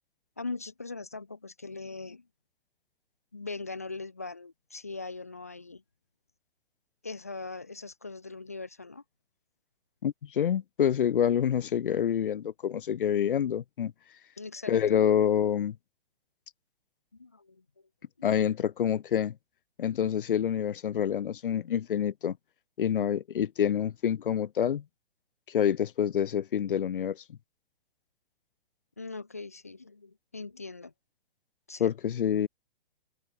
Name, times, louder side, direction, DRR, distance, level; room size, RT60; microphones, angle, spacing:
voice 1, 0.4-2.3 3.3-5.8 7.0-9.0 14.4-14.7 17.1-17.6 29.0-30.9 31.7-31.9, left 3 dB, 15° left, 0.3 m, -40 dB
voice 2, 10.0-13.9 14.7-15.8 18.2-19.3 19.8-22.4 22.8-24.8 25.5-27.4 31.8-32.5, left 9 dB, 65° left, 1.2 m, -27 dB
hypercardioid pair, 170°, 29 cm